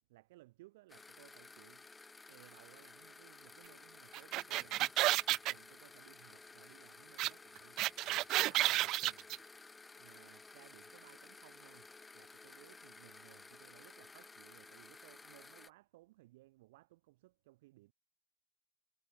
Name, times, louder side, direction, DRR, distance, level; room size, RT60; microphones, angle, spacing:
voice 1, 0.1-1.9 2.3-4.9 5.3-7.8 8.3-9.3 10.0-17.9, right 19 dB, 65° right, 5.2 m, -62 dB
sound 1, 0.9-15.7, left 3 dB, 15° left, 4.8 m, -56 dB
sound 2, 4.1-5.5 7.2-7.3 7.6-9.4, right 17 dB, 50° right, 0.5 m, -31 dB
figure-of-eight pair, 80°, 0 cm